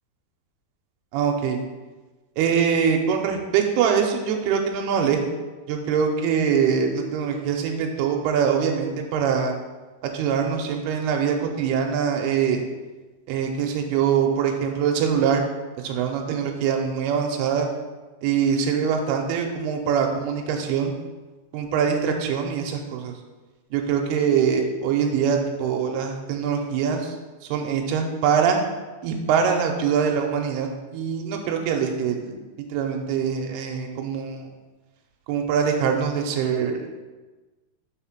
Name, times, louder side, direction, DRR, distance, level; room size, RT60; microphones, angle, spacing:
voice 1, 1.1-1.6 2.4-5.3 5.7-9.5 10.0-12.6 13.3-15.4 15.8-17.7 18.2-20.9 21.5-23.1 23.7-27.1 27.4-28.6 29.0-32.4 32.7-34.5 35.3-37.0, right 7 dB, 85° right, 2 dB, 2.6 m, -23 dB
5.7 x 4.3 x 5.9 m, 1.2 s
omnidirectional pair, 4.6 m